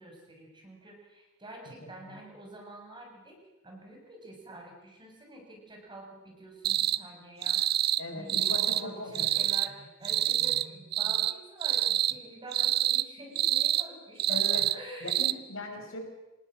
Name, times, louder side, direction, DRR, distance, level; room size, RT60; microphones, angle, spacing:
voice 1, 0.0-3.4 3.6-7.6 8.1-15.2, right 1 dB, 20° right, 1 dB, 6.8 m, -47 dB
voice 2, 1.8-2.2 8.0-9.3 14.3-14.6 15.0-16.0, left 2 dB, 60° left, 4 dB, 5.5 m, -39 dB
sound 1, 6.6-7.0 7.4-8.0 8.3-8.8 9.1-9.7 10.0-10.7 10.9-11.3 11.6-12.1 12.5-13.0 13.4-13.9 14.2-14.8 15.1-15.3, right 12 dB, 45° right, 0.7 m, -27 dB
26.0 x 19.5 x 7.7 m, 1.0 s
head